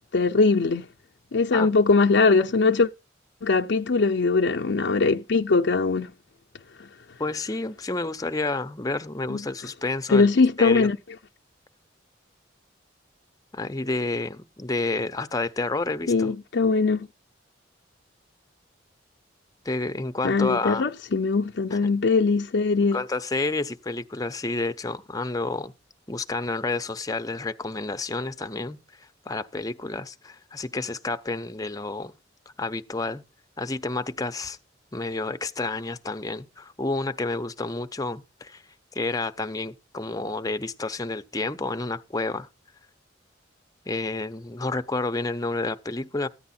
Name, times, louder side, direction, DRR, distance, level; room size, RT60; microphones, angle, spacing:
voice 1, 0.1-0.9 1.3-2.9 3.4-6.1 9.3-9.4 10.1-11.0 16.1-17.1 20.2-23.0, left 4 dB, 70° left, 0.5 m, -21 dB
voice 2, 7.2-10.3 10.6-10.9 13.5-16.3 19.6-20.9 22.9-25.7 26.1-28.8 29.3-32.1 32.6-33.2 33.6-34.6 34.9-38.6 38.9-42.5 43.9-46.3, left 2 dB, 20° left, 0.7 m, -30 dB
14.5 x 9.4 x 4.3 m
head